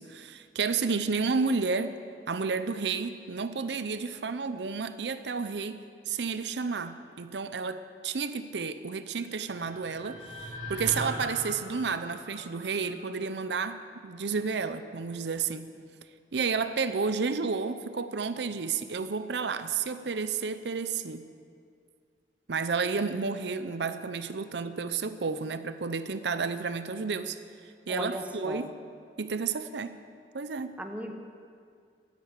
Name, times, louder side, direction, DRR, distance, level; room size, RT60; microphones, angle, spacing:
voice 1, 0.0-2.0 2.3-5.8 6.1-15.7 16.3-21.2 22.5-27.4 27.9-28.7 29.2-30.0 30.3-30.8, right 5 dB, 80° right, 11 dB, 0.7 m, -31 dB
sound 1, 9.1-13.4, equal, 30° right, 4.1 m, -41 dB
voice 2, 27.9-28.7 30.8-31.1, equal, 10° right, 4 dB, 0.9 m, -36 dB
12.5 x 10.5 x 8.7 m, 2.3 s
head